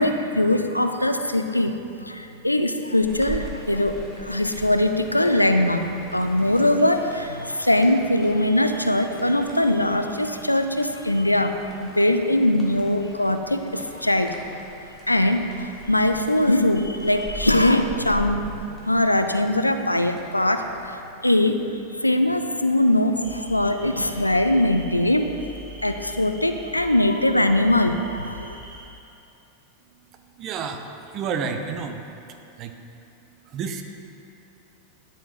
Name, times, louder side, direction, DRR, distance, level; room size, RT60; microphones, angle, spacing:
voice 1, 0.0-1.8 2.0-14.4 15.1-18.6 18.9-21.6 22.0-25.3 25.8-28.6, left 1 dB, 85° left, 7 dB, 0.3 m, -21 dB
sound 1, 3.0-21.1, right 1 dB, ahead, 1.3 m, -42 dB
sound 2, 23.2-28.9, left 1 dB, 55° right, 1.6 m, -42 dB
voice 2, 30.4-30.9 31.1-32.0 32.6-32.7 33.5-33.8, right 6 dB, 35° right, 6 dB, 0.5 m, -29 dB
10.0 x 4.2 x 3.3 m, 2.7 s
figure-of-eight pair, 90°, 0 cm